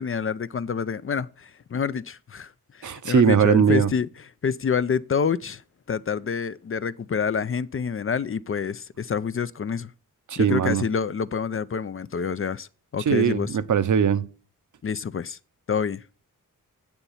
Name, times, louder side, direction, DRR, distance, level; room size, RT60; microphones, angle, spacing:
voice 1, 0.0-4.1 4.4-5.6 5.9-9.9 10.4-12.7 12.9-13.6 14.8-15.4 15.7-16.0, left 6 dB, 40° left, 0.4 m, -27 dB
voice 2, 2.8-3.9 10.3-10.8 13.1-14.3, right 8 dB, 65° right, 0.7 m, -20 dB
8.0 x 7.0 x 5.6 m
cardioid pair, 70°, 33 cm